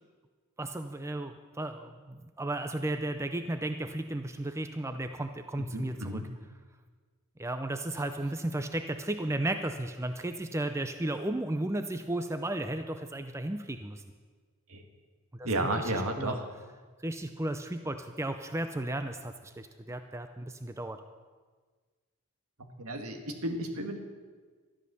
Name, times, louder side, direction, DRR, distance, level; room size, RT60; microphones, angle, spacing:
voice 1, 0.6-6.2 7.4-14.0 15.3-15.9 16.2-16.4 17.0-21.0, right 1 dB, 10° right, 7 dB, 0.5 m, -34 dB
voice 2, 5.7-6.3 14.7-14.8 15.5-16.4 22.6-24.0, right 1 dB, 75° right, 4 dB, 1.8 m, -33 dB
12.5 x 11.0 x 6.8 m, 1.4 s
head